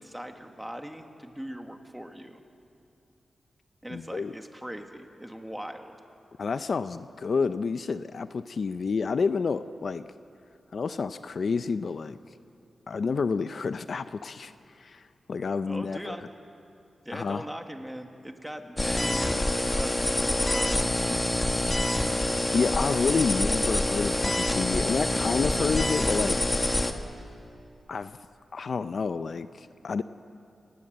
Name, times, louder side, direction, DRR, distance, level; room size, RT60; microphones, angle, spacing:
voice 1, 0.0-2.4 3.8-5.9 15.6-16.2 17.0-20.8, equal, 5° right, 5 dB, 1.8 m, -40 dB
voice 2, 3.9-4.3 6.4-10.1 10.7-12.2 12.9-14.5 14.8-15.0 15.3-16.2 17.1-17.5 22.5-26.4 27.9-28.2 28.5-30.0, left 5 dB, 60° left, 12 dB, 0.6 m, -29 dB
sound 1, 18.8-26.9, left 1 dB, 20° left, 1.5 m, -26 dB
28.5 x 19.0 x 7.9 m, 2.6 s
wide cardioid pair, 105°, 0 cm